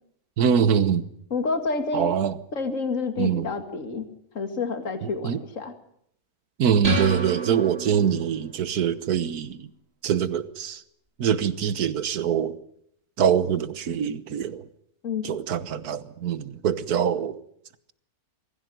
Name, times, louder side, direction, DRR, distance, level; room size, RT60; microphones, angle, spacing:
voice 1, 0.4-1.0 1.9-2.3 3.2-3.5 5.2-5.4 6.6-9.7 10.0-10.8 11.2-12.6 13.2-14.6 15.2-17.4, right 8 dB, 85° right, 1.6 m, -24 dB
voice 2, 1.3-2.1 2.5-4.0 4.3-5.7 15.0-15.3, left 4 dB, 60° left, 2.6 m, -28 dB
sound 1, 6.8-8.5, right 3 dB, 40° right, 2.9 m, -28 dB
24.0 x 15.5 x 9.3 m
omnidirectional pair, 1.6 m